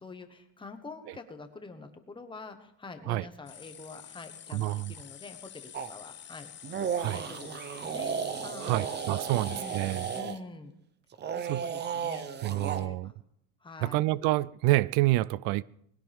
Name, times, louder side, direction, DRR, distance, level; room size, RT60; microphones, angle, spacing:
voice 1, 0.0-6.5 7.1-8.1 8.4-9.0 9.3-9.9 10.1-10.7 11.3-13.1 13.6-14.0, left 3 dB, 15° left, 1.4 m, -46 dB
sound 1, 3.5-10.2, left 10 dB, 30° left, 0.8 m, -48 dB
voice 2, 4.5-4.9 7.0-7.2 8.6-10.1 11.4-11.6 12.4-13.1 13.8-15.6, right 18 dB, 85° right, 0.5 m, -28 dB
sound 2, 5.7-5.9 6.6-10.4 11.1-12.9, right 7 dB, 30° right, 0.8 m, -34 dB
21.0 x 16.5 x 3.6 m
cardioid pair, 150°, 37 cm